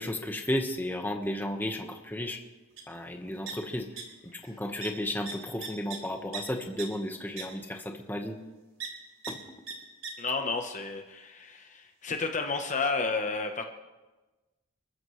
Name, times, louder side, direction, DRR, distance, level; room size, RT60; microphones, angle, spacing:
voice 1, 0.0-2.4 2.9-3.9 4.3-8.4 9.3-9.4, left 1 dB, 10° left, 3 dB, 1.3 m, -33 dB
sound 1, 2.8-2.9 3.1-4.0 4.3-4.5 4.8-4.9 5.3-6.4 6.8-6.9 7.4-7.5 8.8-8.9 9.2-9.3 9.7-9.8 10.0-10.1, right 6 dB, 75° right, 3.6 m, -38 dB
voice 2, 10.2-13.6, left 4 dB, 35° left, 5 dB, 1.0 m, -31 dB
29.0 x 14.5 x 3.2 m, 1.2 s
head